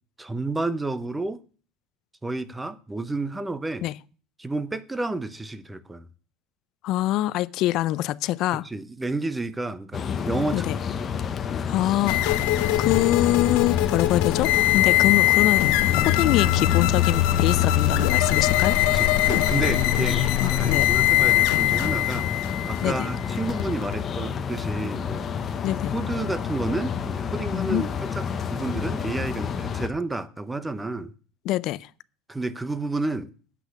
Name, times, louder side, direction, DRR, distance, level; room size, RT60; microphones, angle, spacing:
voice 1, 0.2-1.4 2.2-3.9 4.4-6.1 8.5-10.7 18.9-22.3 22.6-25.3 25.7-28.2 28.5-31.1 32.3-33.3, right 2 dB, 10° right, 0.7 m, -30 dB
voice 2, 6.8-8.7 10.5-10.8 11.7-12.5 12.8-15.6 16.0-19.1 20.4-20.9 22.8-23.1 25.6-26.0 27.5-27.8 31.5-31.9, left 15 dB, 50° left, 0.5 m, -25 dB
sound 1, 9.9-29.9, left 7 dB, 25° left, 0.9 m, -29 dB
sound 2, 12.1-24.0, left 15 dB, 70° left, 0.9 m, -22 dB
8.3 x 6.0 x 8.1 m
supercardioid pair, 140°, 0 cm